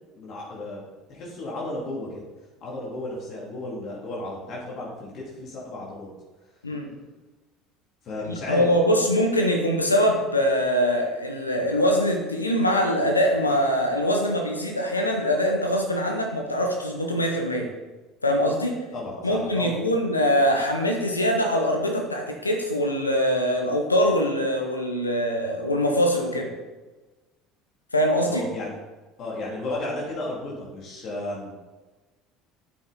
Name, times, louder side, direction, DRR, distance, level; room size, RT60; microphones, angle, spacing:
voice 1, 0.1-2.2 2.6-6.1 8.0-8.7 18.9-19.7 28.2-28.7 29.2-31.5, left 2 dB, 50° left, -4 dB, 2.5 m, -33 dB
voice 2, 8.2-17.7 18.2-18.8 19.2-26.5 27.9-28.4, equal, 90° left, 2 dB, 1.0 m, -23 dB
8.5 x 7.0 x 4.0 m, 1.2 s
figure-of-eight pair, 65°, 0 cm